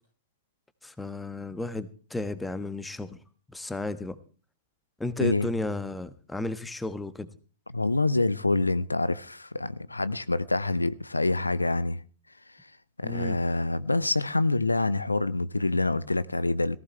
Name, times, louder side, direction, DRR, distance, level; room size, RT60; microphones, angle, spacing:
voice 1, 0.8-3.2 3.5-4.2 5.0-7.3 13.0-13.4, left 2 dB, 5° left, 1.3 m, -33 dB
voice 2, 7.7-12.0 13.0-16.8, left 2 dB, 85° left, 0.7 m, -26 dB
18.0 x 15.5 x 3.2 m
figure-of-eight pair, 100°, 0 cm